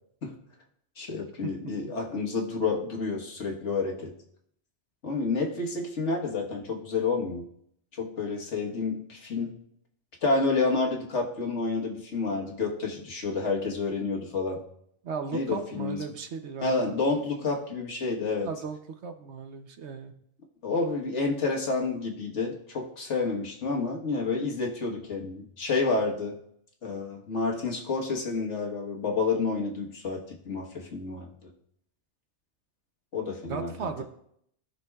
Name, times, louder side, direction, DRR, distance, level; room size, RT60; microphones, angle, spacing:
voice 1, 1.0-4.1 5.0-7.4 7.9-9.6 10.2-14.6 15.3-16.0 16.6-18.5 20.6-26.4 26.8-31.5 33.1-34.0, left 3 dB, 75° left, 0 dB, 1.7 m, -29 dB
voice 2, 15.0-16.9 18.4-20.1 33.5-34.0, right 6 dB, 70° right, 7 dB, 1.1 m, -36 dB
17.5 x 5.9 x 2.4 m, 0.71 s
omnidirectional pair, 1.2 m